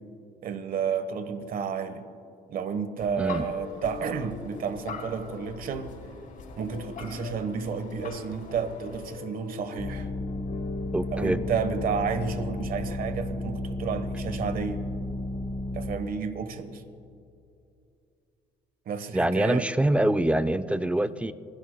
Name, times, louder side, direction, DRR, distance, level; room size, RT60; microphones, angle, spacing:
voice 1, 0.4-2.1 2.5-5.9 6.6-10.1 11.1-14.8 15.7-16.8 18.9-19.7, right 6 dB, 60° right, 11 dB, 1.2 m, -31 dB
sound 1, 3.0-9.2, left 5 dB, 55° left, 4.1 m, -43 dB
sound 2, 3.3-13.0, left 7 dB, 75° left, 1.0 m, -43 dB
sound 3, 9.8-16.0, left 2 dB, 30° left, 2.1 m, -33 dB
voice 2, 10.9-11.4 19.1-21.3, right 1 dB, 5° right, 13 dB, 0.4 m, -25 dB
28.0 x 16.5 x 2.2 m, 2.6 s
cardioid pair, 110°, 17 cm